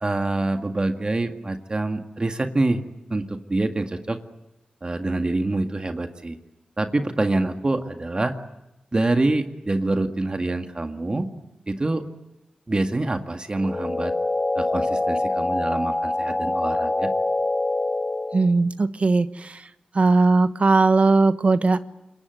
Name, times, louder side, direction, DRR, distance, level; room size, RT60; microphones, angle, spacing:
voice 1, 0.0-2.8 3.1-4.2 4.8-6.4 6.8-8.3 8.9-11.3 11.7-12.0 12.7-14.1 14.5-17.1, right 2 dB, 35° right, 6 dB, 1.9 m, -25 dB
sound 1, 13.5-18.5, left 2 dB, 25° left, 2.2 m, -25 dB
voice 2, 18.3-19.6 19.9-21.8, right 3 dB, 50° right, 11 dB, 1.1 m, -19 dB
26.5 x 22.5 x 9.3 m, 0.94 s
cardioid pair, 65°, 3 cm